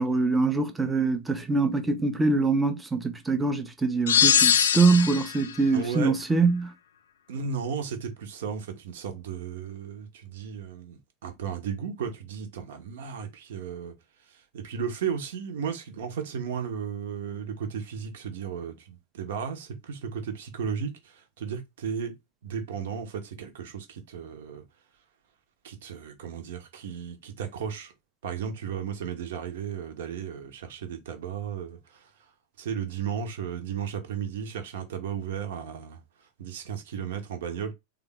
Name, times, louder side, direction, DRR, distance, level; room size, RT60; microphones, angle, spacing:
voice 1, 0.0-6.7, right 3 dB, 10° right, 0.7 m, -24 dB
sound 1, 4.1-5.4, left 8 dB, 65° left, 0.4 m, -21 dB
voice 2, 5.7-6.1 7.3-13.9 14.3-22.1 22.4-24.6 25.6-27.9 28.2-32.1 32.6-36.0 36.4-37.7, right 7 dB, 55° right, 1.0 m, -34 dB
3.7 x 2.4 x 3.6 m
figure-of-eight pair, 90°, 0 cm